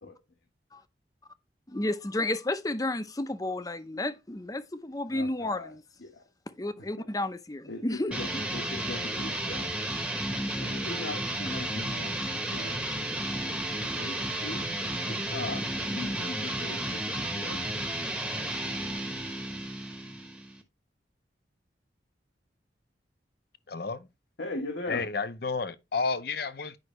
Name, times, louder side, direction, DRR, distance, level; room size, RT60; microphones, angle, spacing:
voice 1, 1.7-5.8 6.6-8.1, left 1 dB, 20° left, 0.6 m, -32 dB
voice 2, 5.1-5.7 6.0-6.2 7.7-9.7 10.6-12.1 12.5-12.7 13.0-13.6 14.0-14.7 15.1-15.6 15.9-17.6 24.4-25.0, left 2 dB, 80° left, 1.3 m, -39 dB
sound 1, 8.1-20.6, right 1 dB, 5° right, 1.0 m, -33 dB
voice 3, 23.7-24.1 24.9-26.8, left 4 dB, 55° left, 0.7 m, -31 dB
9.9 x 5.5 x 3.1 m
head